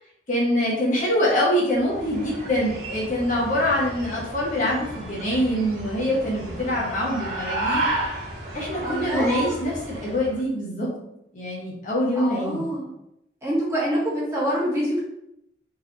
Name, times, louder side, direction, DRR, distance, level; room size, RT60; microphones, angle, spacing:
voice 1, 0.3-8.0 8.5-10.9 11.3-12.7, equal, 45° left, -5 dB, 1.2 m, -24 dB
sound 1, 1.7-10.4, right 1 dB, 60° right, 1.5 m, -32 dB
voice 2, 8.8-9.6 12.2-12.9 13.4-15.0, right 1 dB, 15° right, -8 dB, 1.5 m, -26 dB
4.0 x 3.4 x 2.9 m, 0.80 s
head